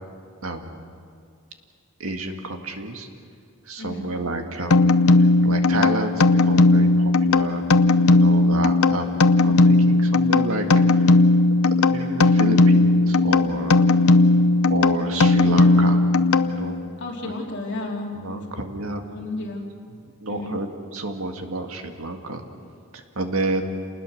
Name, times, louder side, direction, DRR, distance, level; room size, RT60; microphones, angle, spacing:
voice 1, 0.4-0.8 2.0-3.1 3.7-4.9 5.4-7.6 8.1-10.7 11.8-13.9 14.7-16.0 16.5-16.8 17.2-17.3 18.2-19.0 20.2-22.4 22.9-23.6, right 2 dB, 75° right, 5 dB, 2.0 m, -30 dB
voice 2, 3.8-4.1 15.3-15.9 17.0-18.4 19.1-19.6 20.3-20.6, left 2 dB, 55° left, -1 dB, 3.2 m, -33 dB
sound 1, 4.7-16.9, left 2 dB, 75° left, 0.8 m, -17 dB
28.5 x 20.5 x 6.6 m, 2.3 s
head